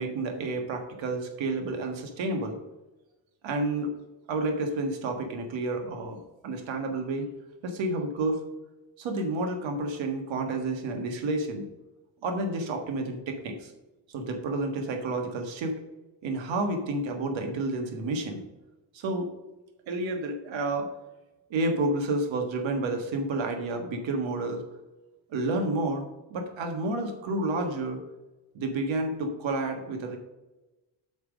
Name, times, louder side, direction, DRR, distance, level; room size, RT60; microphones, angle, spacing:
voice 1, 0.0-2.6 3.4-3.9 4.3-6.2 6.4-7.3 7.6-8.4 9.0-11.7 12.2-13.7 14.1-15.8 16.2-18.4 18.9-19.3 19.9-20.9 21.5-24.6 25.3-26.0 26.3-28.0 28.5-30.2, right 2 dB, 70° right, 4 dB, 1.6 m, -30 dB
6.2 x 5.1 x 6.1 m, 1.1 s
cardioid pair, 95°, 46 cm